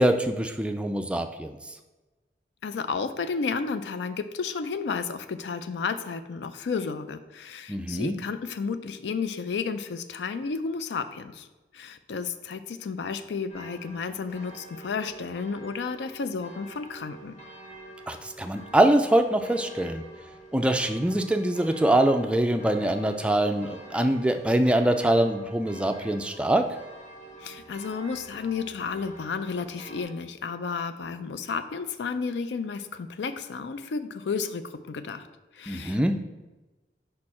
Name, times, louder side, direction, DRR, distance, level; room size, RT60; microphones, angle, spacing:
voice 1, 0.0-1.6 7.7-8.1 18.1-20.0 20.5-26.6 35.7-36.1, right 1 dB, 5° right, 6 dB, 0.3 m, -23 dB
voice 2, 2.6-11.5 11.7-17.4 27.4-35.3 35.5-36.1, left 5 dB, 80° left, 11 dB, 0.4 m, -32 dB
sound 1, 13.5-30.0, right 2 dB, 40° left, 1.3 m, -47 dB
5.2 x 4.4 x 4.2 m, 1.1 s
head